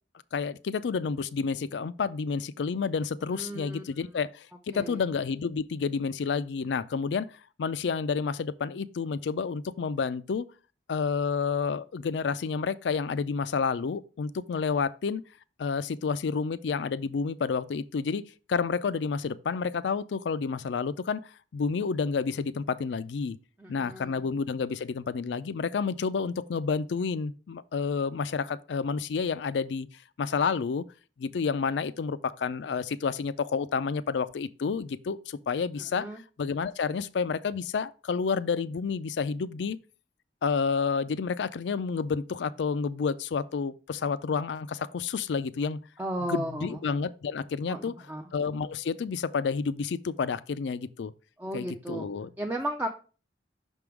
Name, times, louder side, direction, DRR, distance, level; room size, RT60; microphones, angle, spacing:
voice 1, 0.3-7.3 7.6-10.4 10.9-15.2 15.6-18.2 18.5-21.2 21.5-23.4 23.7-29.9 30.2-30.8 31.2-36.1 36.4-39.8 40.4-45.8 46.2-47.9 48.3-51.1 51.5-52.3, left 5 dB, 70° left, 0.4 m, -30 dB
voice 2, 3.3-3.8 4.7-5.0 23.6-24.2 35.9-36.2 46.0-46.8 47.7-48.3 51.4-52.1 52.4-52.9, right 1 dB, 10° right, 0.5 m, -34 dB
5.9 x 3.6 x 4.6 m
head